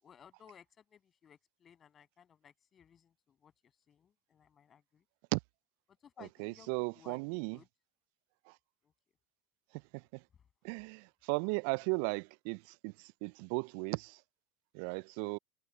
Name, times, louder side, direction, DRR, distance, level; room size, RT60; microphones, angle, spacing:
voice 1, 0.0-3.5 3.9-5.0 6.0-7.7, left 8 dB, 35° left, 7.3 m, -60 dB
voice 2, 6.4-7.6 10.6-12.9 13.2-14.2 14.7-15.4, right 33 dB, 65° right, 0.4 m, -36 dB
hypercardioid pair, 75°, 0 cm